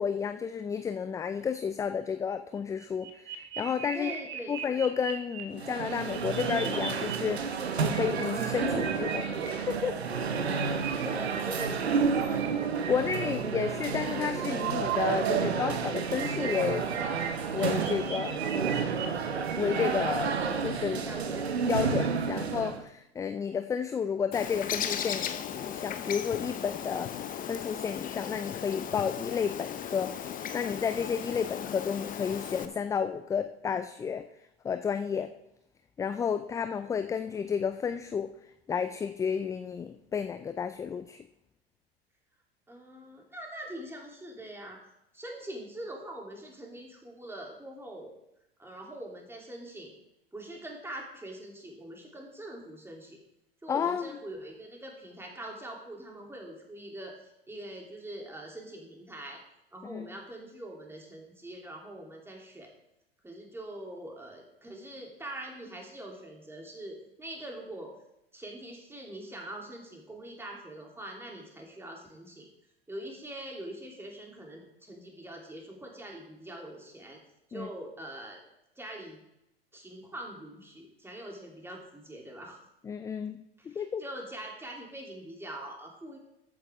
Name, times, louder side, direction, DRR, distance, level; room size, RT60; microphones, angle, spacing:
voice 1, 0.0-4.1 4.5-10.0 12.9-16.9 17.5-18.4 19.6-21.1 21.7-34.2 34.6-35.3 36.0-38.3 38.7-41.2 53.7-54.1 59.8-60.1 77.5-77.7 82.8-84.0, left 7 dB, 10° left, 10 dB, 0.3 m, -32 dB
sound 1, 2.8-5.4 5.9-7.1 7.4-9.5 10.1-13.1 13.9-15.4 15.7-20.1, right 8 dB, 40° right, 2.2 m, -37 dB
voice 2, 3.9-4.8 11.0-12.5 21.0-21.5 42.7-44.8 45.1-48.1 48.6-49.9 50.3-53.2 53.6-59.4 59.7-62.7 63.2-67.9 68.3-72.5 72.9-77.2 77.5-78.4 78.8-79.2 79.7-82.6 83.6-86.2, right 1 dB, 10° right, -1 dB, 3.1 m, -43 dB
sound 2, 5.5-22.8, right 5 dB, 80° right, 1.1 m, -31 dB
Bird, 24.3-32.7, left 9 dB, 25° left, 1.0 m, -36 dB
14.0 x 8.7 x 3.6 m, 0.83 s
figure-of-eight pair, 90°, 31 cm